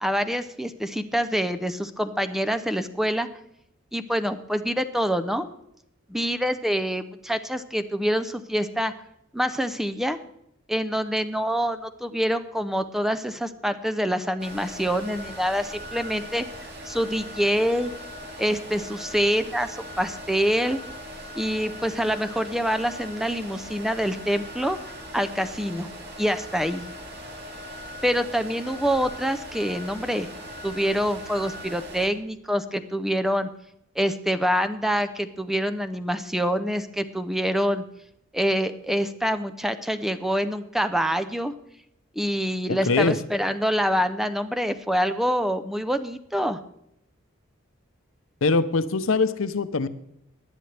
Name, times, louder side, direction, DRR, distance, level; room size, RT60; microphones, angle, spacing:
voice 1, 0.0-3.3 3.9-5.5 6.1-8.9 9.3-10.2 10.7-16.5 16.9-17.9 18.4-20.8 21.3-24.8 25.1-25.9 26.2-26.8 28.0-30.3 30.6-33.5 34.0-37.8 38.3-41.5 42.2-46.6, equal, ahead, 10 dB, 0.5 m, -26 dB
sound 1, 14.4-32.1, equal, 55° right, 2.3 m, -40 dB
voice 2, 42.7-43.2 48.4-49.9, left 3 dB, 85° left, 13 dB, 0.7 m, -22 dB
18.5 x 10.5 x 3.4 m, 0.78 s
head